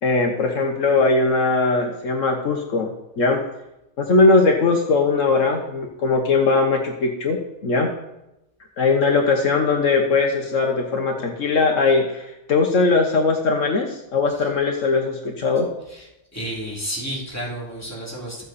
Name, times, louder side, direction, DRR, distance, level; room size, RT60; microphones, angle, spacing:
voice 1, 0.0-2.9 3.2-3.4 4.0-7.4 7.6-7.9 8.8-15.7, left 3 dB, 70° left, 2 dB, 1.5 m, -20 dB
voice 2, 15.8-18.4, equal, 10° left, -5 dB, 3.1 m, -32 dB
13.5 x 7.8 x 4.2 m, 0.89 s
omnidirectional pair, 1.4 m